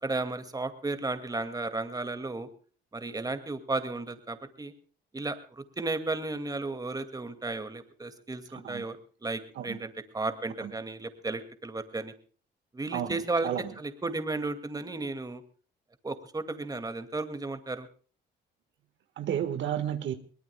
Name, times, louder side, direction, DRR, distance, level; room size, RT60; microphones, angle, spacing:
voice 1, 0.0-2.5 2.9-4.7 5.1-9.0 9.2-12.1 12.7-13.5 13.8-15.4 16.0-17.9, right 3 dB, 20° right, 9 dB, 2.3 m, -34 dB
voice 2, 19.2-20.1, right 10 dB, 70° right, 9 dB, 1.6 m, -31 dB
22.5 x 19.0 x 2.3 m, 0.41 s
cardioid pair, 90°, 20 cm